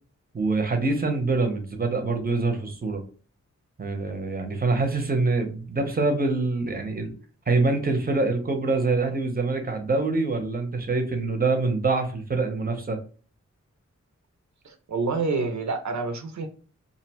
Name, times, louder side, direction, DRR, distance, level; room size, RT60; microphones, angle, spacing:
voice 1, 0.3-3.0 3.8-7.1 7.5-13.0, right 3 dB, 30° right, 5 dB, 0.6 m, -25 dB
voice 2, 14.6-16.5, right 4 dB, 70° right, 5 dB, 0.5 m, -28 dB
2.5 x 2.1 x 2.8 m, 0.38 s
wide cardioid pair, 100°, 30 cm